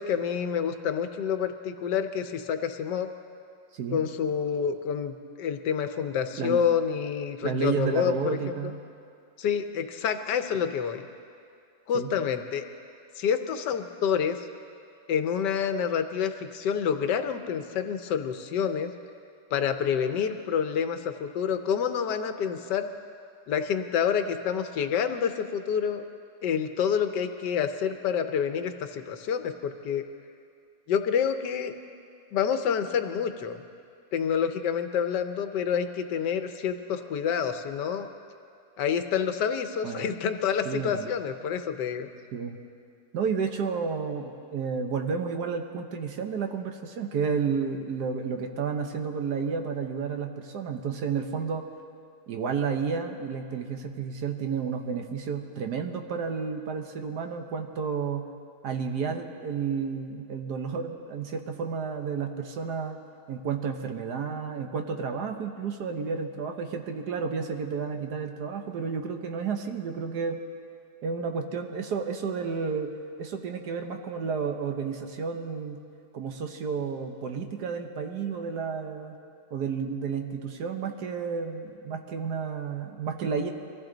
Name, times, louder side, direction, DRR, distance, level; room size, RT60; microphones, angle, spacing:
voice 1, 0.0-3.1 3.9-8.7 9.4-11.0 11.9-12.6 13.2-14.5 15.1-18.9 19.5-22.9 23.5-26.0 26.4-30.0 30.9-31.7 32.3-33.6 34.1-38.1 38.8-42.1, left 7 dB, 80° left, 8 dB, 1.4 m, -28 dB
voice 2, 7.4-8.8 11.9-12.1 39.8-40.1 40.6-41.1 42.3-42.6 43.1-51.7 52.3-58.3 58.6-63.0 63.3-70.4 71.0-72.9 73.2-75.8 76.1-79.1 79.5-83.5, right 5 dB, 70° right, 5 dB, 1.5 m, -31 dB
23.0 x 14.5 x 3.9 m, 2.3 s
omnidirectional pair, 1.9 m